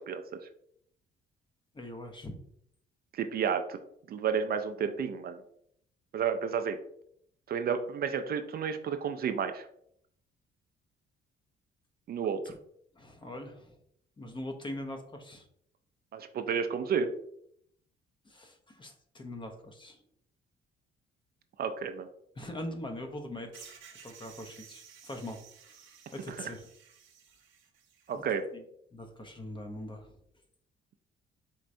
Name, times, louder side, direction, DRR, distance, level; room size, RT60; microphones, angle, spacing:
voice 1, 1.7-2.4 12.4-12.6 12.9-13.8 14.2-15.5 18.2-20.0 22.4-23.7 24.0-25.4 25.7-25.8 26.1-26.7 28.1-28.2 28.5-28.6 28.9-30.2, left 1 dB, 25° left, 5 dB, 0.7 m, -42 dB
voice 2, 3.1-3.8 4.1-5.4 6.1-6.8 7.5-9.7 12.1-12.4 16.1-17.1 21.6-22.1 26.4-26.5 28.1-28.5, right 7 dB, 50° right, 8 dB, 0.4 m, -31 dB
sound 1, 23.5-28.3, right 7 dB, 75° right, 0.8 m, -54 dB
4.5 x 3.1 x 2.6 m, 0.71 s
cardioid pair, 90°, 20 cm